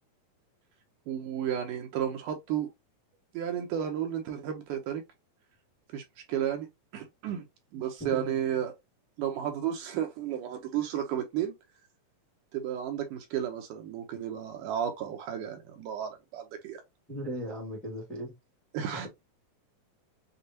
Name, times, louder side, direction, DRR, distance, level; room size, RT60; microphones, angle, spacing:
voice 1, 1.1-2.7 3.3-5.0 5.9-6.7 6.9-7.4 7.7-8.7 9.2-11.5 12.5-16.8 18.7-19.1, right 10 dB, 75° right, 2.1 m, -33 dB
voice 2, 8.0-8.4 17.1-18.3 18.9-19.1, equal, ahead, 0.6 m, -37 dB
6.6 x 2.4 x 2.7 m
omnidirectional pair, 3.9 m